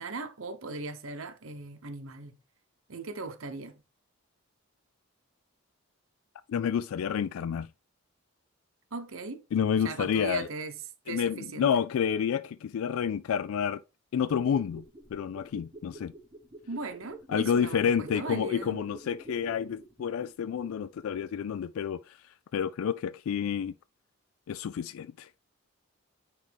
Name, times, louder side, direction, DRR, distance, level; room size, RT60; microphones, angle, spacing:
voice 1, 0.0-2.4 2.9-3.7 8.9-9.4 9.8-10.7 11.1-11.8 16.7-18.8, right 3 dB, 70° right, 0.9 m, -38 dB
voice 2, 6.5-7.7 9.5-10.5 11.1-13.8 14.1-14.8 15.1-16.1 17.3-22.0 22.5-23.7 24.5-25.3, left 7 dB, 80° left, 0.3 m, -29 dB
sound 1, 14.3-21.1 21.3-21.4, right 2 dB, 25° right, 1.2 m, -48 dB
9.6 x 3.2 x 3.4 m
head